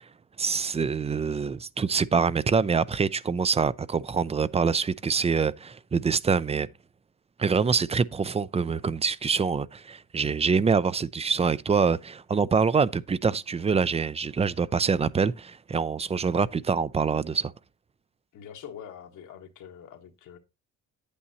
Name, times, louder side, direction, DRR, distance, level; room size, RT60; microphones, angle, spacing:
voice 1, 0.4-6.7 7.4-17.5, right 5 dB, 20° right, 0.4 m, -25 dB
voice 2, 18.3-20.4, left 8 dB, 80° left, 1.6 m, -44 dB
9.4 x 8.5 x 2.8 m
cardioid pair, 90°, 30 cm